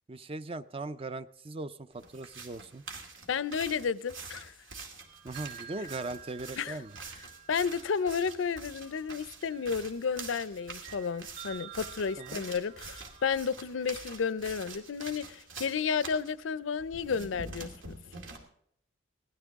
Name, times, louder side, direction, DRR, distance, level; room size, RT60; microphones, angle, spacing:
voice 1, 0.1-2.8 5.2-7.0 12.2-12.4, right 2 dB, 30° right, 0.5 m, -39 dB
sound 1, 2.0-16.3 16.8-18.4, right 3 dB, 80° right, 2.4 m, -46 dB
voice 2, 3.3-4.5 6.6-6.8 7.5-18.0, left 6 dB, 75° left, 0.5 m, -32 dB
sound 2, 5.0-13.9, right 9 dB, 50° right, 3.6 m, -51 dB
18.0 x 13.5 x 3.6 m
head